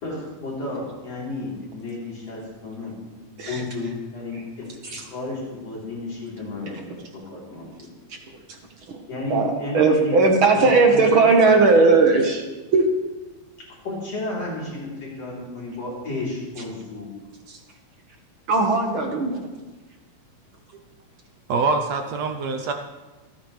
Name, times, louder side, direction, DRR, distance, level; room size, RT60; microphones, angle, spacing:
voice 1, 0.0-3.0 3.3-4.7 4.9-7.9 9.1-10.2 10.5-11.2 13.8-17.1, left 2 dB, 50° left, -5 dB, 4.6 m, -32 dB
voice 2, 8.1-8.6 8.9-9.0 9.3-12.4 12.7-12.8 17.5-17.6 18.5-19.5, right 3 dB, 55° right, 3 dB, 1.5 m, -18 dB
voice 3, 21.5-22.7, right 4 dB, 75° right, 5 dB, 1.6 m, -24 dB
28.0 x 9.8 x 3.3 m, 1.2 s
omnidirectional pair, 3.8 m